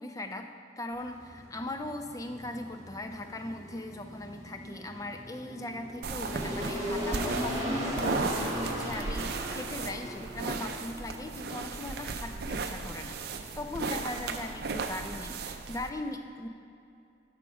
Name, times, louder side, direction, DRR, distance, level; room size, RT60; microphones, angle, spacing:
voice 1, 0.0-16.5, left 1 dB, 15° left, 6 dB, 0.4 m, -39 dB
sound 1, 0.9-15.4, equal, 15° right, 1.4 m, -38 dB
sound 2, 6.0-15.9, right 4 dB, 50° right, 0.5 m, -36 dB
12.0 x 4.9 x 4.8 m, 2.6 s
head